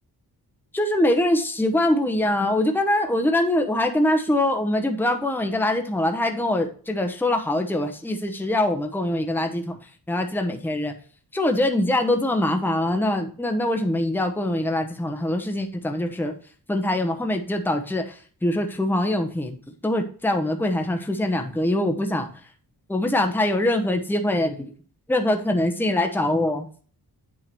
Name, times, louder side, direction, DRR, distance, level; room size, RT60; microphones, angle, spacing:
voice 1, 0.7-9.8 10.1-10.9 11.3-16.3 16.7-19.5 19.8-22.3 22.9-24.7 25.1-26.7, left 1 dB, 5° left, 3 dB, 1.0 m, -23 dB
9.1 x 3.8 x 4.5 m, 0.42 s
wide cardioid pair, 115°, 39 cm